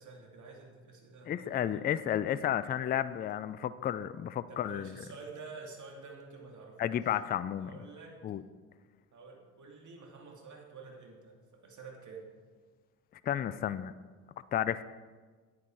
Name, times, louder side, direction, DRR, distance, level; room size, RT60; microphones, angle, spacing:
voice 1, 0.0-1.9 4.6-6.8 7.1-7.2 7.6-8.2 9.1-12.3, right 4 dB, 40° right, 0 dB, 2.7 m, -49 dB
voice 2, 1.3-5.0 6.8-7.8 8.2-8.4 13.2-13.9 14.5-14.8, left 10 dB, 25° left, 15 dB, 0.4 m, -32 dB
9.5 x 9.5 x 4.7 m, 1.4 s
hypercardioid pair, 60°, 45 cm